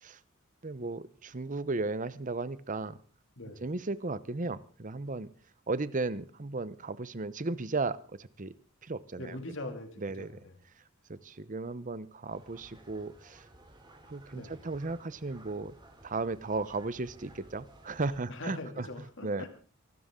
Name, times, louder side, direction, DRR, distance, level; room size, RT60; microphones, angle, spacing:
voice 1, 0.6-3.0 3.6-5.3 5.7-8.5 8.8-9.4 10.0-10.3 11.1-13.4 14.1-15.8 16.0-18.9 19.2-19.5, right 3 dB, 40° right, 16 dB, 0.8 m, -35 dB
voice 2, 3.4-3.7 9.2-10.5 14.3-14.6 18.3-19.5, left 2 dB, 60° left, 6 dB, 2.6 m, -42 dB
sound 1, 12.3-18.2, right 1 dB, 20° right, 3.0 m, -56 dB
25.0 x 13.0 x 3.8 m, 0.37 s
head